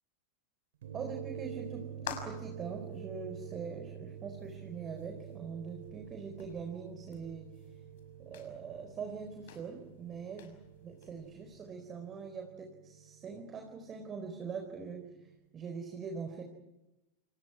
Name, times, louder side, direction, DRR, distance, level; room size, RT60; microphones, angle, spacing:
sound 1, 0.8-15.4, right 9 dB, 60° right, 2.8 m, -48 dB
voice 1, 0.9-7.5 8.2-10.5 10.8-16.4, right 5 dB, 25° right, 5 dB, 4.2 m, -43 dB
sound 2, 1.6-11.7, left 9 dB, 55° left, 6.0 m, -52 dB
29.0 x 28.5 x 4.8 m, 0.97 s
figure-of-eight pair, 90°, 0 cm